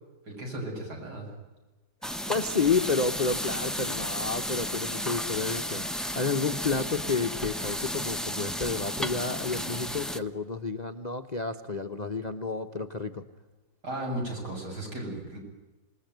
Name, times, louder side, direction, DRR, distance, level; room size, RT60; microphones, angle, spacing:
voice 1, 0.3-1.3 13.8-15.4, right 1 dB, 60° right, 1 dB, 8.2 m, -35 dB
sound 1, 2.0-10.2, equal, ahead, 0.5 m, -33 dB
voice 2, 2.1-13.2, left 4 dB, 30° left, 8 dB, 0.9 m, -30 dB
27.5 x 20.5 x 9.3 m, 1.2 s
omnidirectional pair, 2.0 m